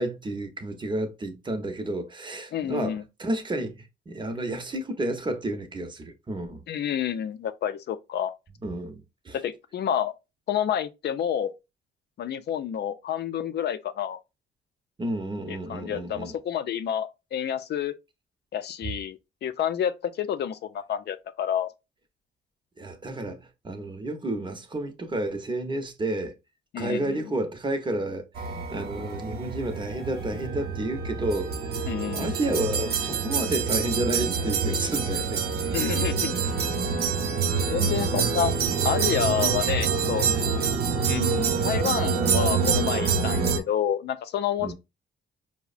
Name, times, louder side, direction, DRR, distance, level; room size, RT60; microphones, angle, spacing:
voice 1, 0.0-6.6 8.6-9.4 15.0-16.3 18.8-18.9 22.8-26.3 26.8-28.3 28.7-31.8 32.1-35.4 44.6-44.7, right 1 dB, 25° right, 0.7 m, -31 dB
voice 2, 2.5-3.0 6.7-8.3 9.4-10.1 10.5-11.5 12.2-14.2 15.5-17.9 18.5-21.7 26.7-27.2 31.9-32.3 35.7-36.3 37.7-38.5 38.8-40.3 41.0-44.7, left 9 dB, 60° left, 0.5 m, -29 dB
sound 1, 28.3-43.6, right 5 dB, 55° right, 0.8 m, -26 dB
4.6 x 2.1 x 2.4 m
cardioid pair, 90°, 20 cm